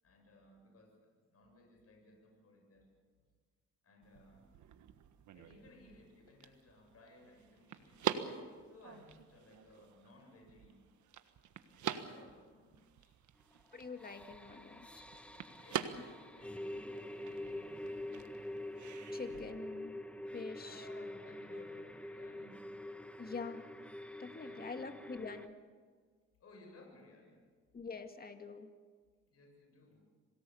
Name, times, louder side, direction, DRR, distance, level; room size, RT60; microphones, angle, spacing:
voice 1, 0.0-2.9 3.8-4.5 5.3-8.1 8.6-10.8 11.7-13.2 15.6-18.6 19.1-19.2 20.5-22.7 24.3-25.4 26.4-27.5 29.3-30.1, left 2 dB, 50° left, 2 dB, 7.6 m, -60 dB
sound 1, 4.0-19.5, right 9 dB, 70° right, 1.5 m, -45 dB
voice 2, 13.7-15.0 19.1-20.0 20.3-20.9 23.2-23.6 24.2-25.5 27.7-28.7, left 4 dB, 30° left, 7 dB, 2.0 m, -45 dB
sound 2, 13.7-25.5, left 1 dB, 5° left, 1.2 m, -46 dB
27.0 x 18.5 x 7.1 m, 1.5 s
cardioid pair, 90°, 30 cm